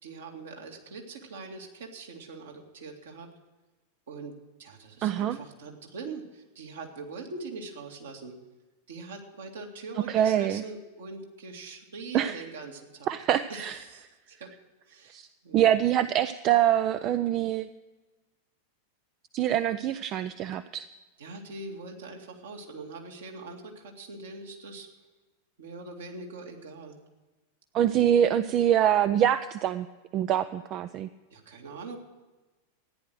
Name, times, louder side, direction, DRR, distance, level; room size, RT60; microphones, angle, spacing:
voice 1, 0.0-3.3 4.1-8.4 8.9-13.2 13.5-14.5 14.9-15.7 21.2-24.9 25.6-27.0 31.3-32.0, right 3 dB, 65° right, 1 dB, 2.3 m, -42 dB
voice 2, 5.0-5.4 10.1-10.6 12.1-12.4 13.1-13.8 15.1-15.3 15.5-17.7 19.3-20.9 27.7-29.9 30.1-31.1, right 11 dB, 35° right, 12 dB, 0.5 m, -25 dB
14.0 x 10.0 x 6.2 m, 1.2 s
figure-of-eight pair, 90°, 0 cm